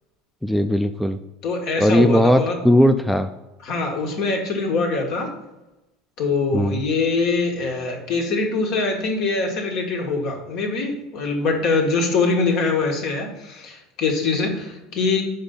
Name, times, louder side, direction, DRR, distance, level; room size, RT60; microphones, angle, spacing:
voice 1, 0.4-1.2 1.8-3.3 6.5-6.8, equal, ahead, 7 dB, 0.4 m, -18 dB
voice 2, 1.4-2.6 3.6-5.3 6.2-15.2, left 3 dB, 60° left, 2 dB, 1.4 m, -23 dB
5.3 x 4.0 x 5.5 m, 0.99 s
hypercardioid pair, 85°, 0 cm